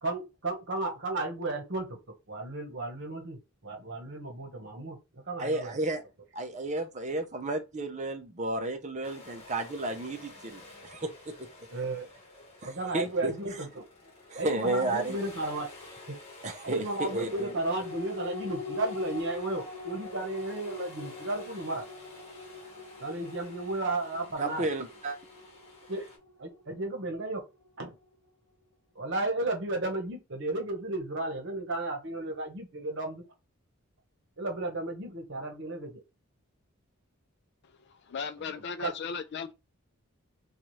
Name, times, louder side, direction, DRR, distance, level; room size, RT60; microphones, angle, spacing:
voice 1, 0.0-2.0 2.3-6.0 8.5-8.6 11.7-12.1 12.6-13.8 14.3-15.7 16.1-16.2 16.6-21.8 23.0-24.7 25.9-26.1 26.4-27.4 27.8-27.9 28.9-33.2 34.4-36.0 38.4-38.9, right 2 dB, 55° right, 1.0 m, -34 dB
voice 2, 5.4-6.0 6.3-11.3 12.6-13.3 14.3-15.2 16.4-17.5 24.4-25.2, right 2 dB, 30° right, 0.6 m, -32 dB
sound 1, 9.0-26.2, left 2 dB, 30° left, 1.3 m, -51 dB
sound 2, 16.9-27.7 28.1-28.2, left 4 dB, 15° left, 1.0 m, -44 dB
voice 3, 37.9-39.5, left 6 dB, 50° left, 0.3 m, -37 dB
4.2 x 2.4 x 3.1 m
head